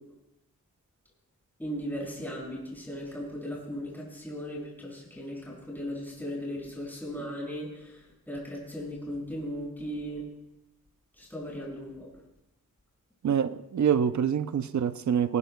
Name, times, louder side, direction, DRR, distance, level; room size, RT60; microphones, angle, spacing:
voice 1, 1.6-10.2 11.2-12.1, equal, 5° left, -4 dB, 6.2 m, -37 dB
voice 2, 13.2-15.4, right 8 dB, 60° right, 12 dB, 0.6 m, -26 dB
19.5 x 18.5 x 2.3 m, 0.89 s
wide cardioid pair, 90°, 32 cm